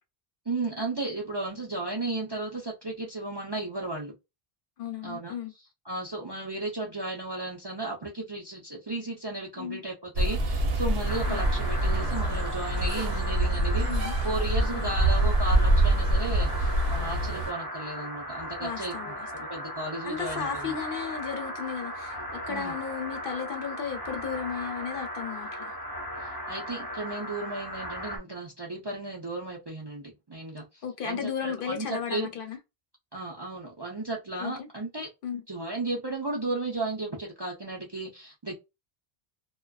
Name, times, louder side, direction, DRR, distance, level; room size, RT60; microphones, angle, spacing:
voice 1, 0.5-4.1 5.0-5.3 5.9-19.2 19.5-20.8 22.5-22.7 26.2-32.3 33.1-35.1 35.5-38.5, right 2 dB, 35° right, 0.5 m, -34 dB
voice 2, 4.8-5.5 9.6-9.8 11.3-11.4 13.9-14.1 14.7-14.9 18.6-19.3 20.0-25.8 30.8-32.6 34.4-34.7 35.2-35.4, left 7 dB, 65° left, 0.7 m, -35 dB
sound 1, 10.2-17.5, right 1 dB, 75° right, 0.8 m, -25 dB
sound 2, 11.1-28.2, equal, 25° left, 0.7 m, -37 dB
2.5 x 2.2 x 2.2 m
omnidirectional pair, 1.0 m